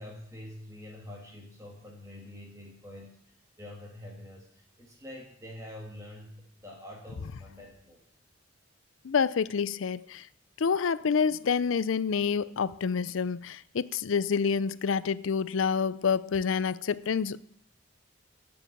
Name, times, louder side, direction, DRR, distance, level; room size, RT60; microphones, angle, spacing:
voice 1, 0.0-8.0, left 1 dB, 15° right, 1.9 m, -46 dB
voice 2, 9.0-10.2 10.6-17.4, left 6 dB, 75° left, 0.5 m, -28 dB
12.5 x 7.0 x 7.3 m
head